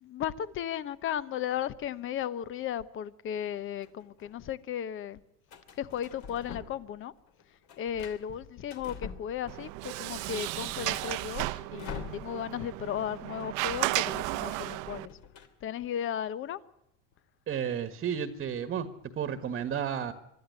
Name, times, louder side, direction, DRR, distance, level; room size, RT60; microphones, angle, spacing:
voice 1, 0.0-5.2 5.8-7.1 7.8-15.2 15.6-16.6, left 9 dB, 35° left, 1.0 m, -35 dB
sound 1, 3.5-4.3 5.5-7.0 7.3-9.8 10.1-10.2 10.5-12.7 12.9-13.1 13.4-15.5, left 6 dB, 50° left, 3.1 m, -46 dB
Sliding door, 9.5-15.0, right 19 dB, 55° right, 0.9 m, -34 dB
voice 2, 17.5-18.9 19.2-20.1, right 8 dB, 30° right, 1.5 m, -32 dB
24.5 x 12.5 x 9.7 m
supercardioid pair, 130°, 37 cm